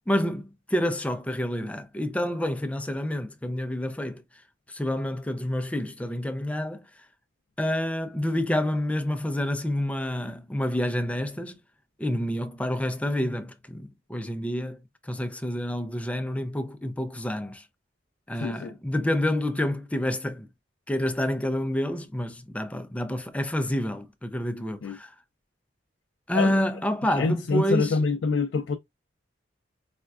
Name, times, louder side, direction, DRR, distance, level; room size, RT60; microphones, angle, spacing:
voice 1, 0.1-4.2 4.7-6.8 7.6-11.6 12.0-17.6 18.3-20.5 20.9-25.1 26.3-28.0, left 1 dB, 5° left, 0.4 m, -28 dB
voice 2, 18.4-18.8 24.8-25.0 26.3-26.6 27.2-28.8, left 4 dB, 75° left, 0.3 m, -26 dB
4.2 x 2.2 x 2.3 m
head